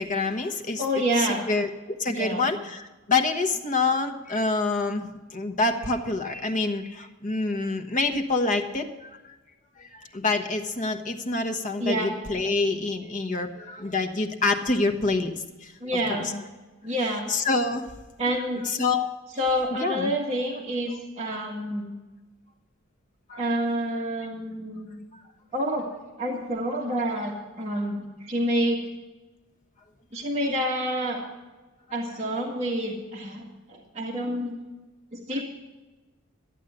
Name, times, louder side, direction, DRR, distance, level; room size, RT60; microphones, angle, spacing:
voice 1, 0.0-0.9 1.2-9.3 9.8-15.7 16.1-16.2 17.3-17.9 18.6-19.1 19.8-20.1 23.3-23.5 35.4-35.5, left 3 dB, 40° left, 7 dB, 1.3 m, -27 dB
voice 2, 0.8-1.5 2.1-2.5 11.8-12.1 15.8-16.4 16.8-17.3 18.2-18.6 19.4-21.9 23.4-25.0 25.5-25.9 26.2-28.8 30.1-31.2 31.9-33.4 33.7-34.5 35.1-35.4, equal, 30° right, -3 dB, 1.8 m, -28 dB
13.0 x 8.4 x 8.0 m, 1.2 s
head